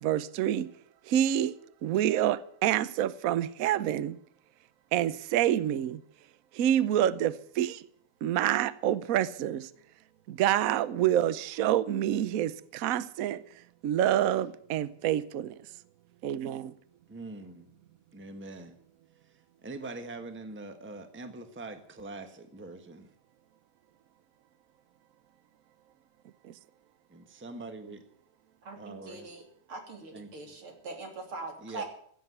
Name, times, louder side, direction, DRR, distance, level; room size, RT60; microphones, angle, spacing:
voice 1, 0.0-0.7 1.0-1.6 1.8-4.2 4.9-6.0 6.5-7.8 8.2-9.7 10.3-13.4 13.8-15.6 16.2-16.7 26.4-26.5, right 11 dB, 90° right, 0.7 m, -27 dB
voice 2, 17.1-17.7 18.1-18.8 19.6-23.1 27.1-28.0 28.8-29.3 30.1-30.3 31.6-31.8, right 2 dB, 5° right, 1.1 m, -43 dB
voice 3, 28.6-29.4 29.7-31.8, right 3 dB, 70° right, 3.9 m, -42 dB
16.0 x 8.1 x 9.6 m
omnidirectional pair, 2.4 m